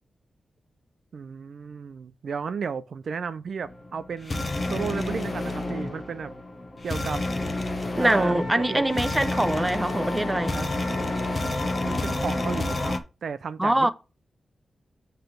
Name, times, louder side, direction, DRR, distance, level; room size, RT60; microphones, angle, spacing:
voice 1, 1.1-4.4 4.7-6.3 6.8-7.2 8.0-9.0 11.8-13.0 13.2-13.9, right 6 dB, 60° right, 0.6 m, -33 dB
sound 1, 3.6-13.0, left 2 dB, 25° left, 1.0 m, -29 dB
Wind instrument woodwind instrument, 7.9-11.8, left 1 dB, 45° left, 1.3 m, -38 dB
voice 2, 7.9-10.7 13.6-13.9, right 1 dB, 10° right, 0.6 m, -23 dB
8.0 x 3.4 x 6.4 m
wide cardioid pair, 175°, 0 cm